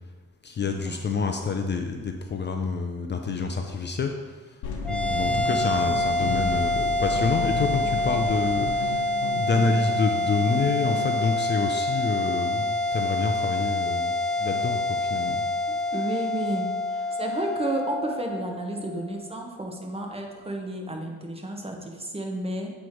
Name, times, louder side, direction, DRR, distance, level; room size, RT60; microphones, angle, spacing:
voice 1, 0.4-4.1 4.9-9.1 9.4-15.4, left 4 dB, 35° left, 4 dB, 0.5 m, -28 dB
sound 1, 4.6-11.3, left 4 dB, 85° left, 1.0 m, -34 dB
sound 2, 4.8-19.4, left 1 dB, 5° left, 0.9 m, -27 dB
voice 2, 15.9-22.7, right 1 dB, 20° right, 1 dB, 1.1 m, -32 dB
8.2 x 3.2 x 4.6 m, 1.3 s
cardioid pair, 90°, 30 cm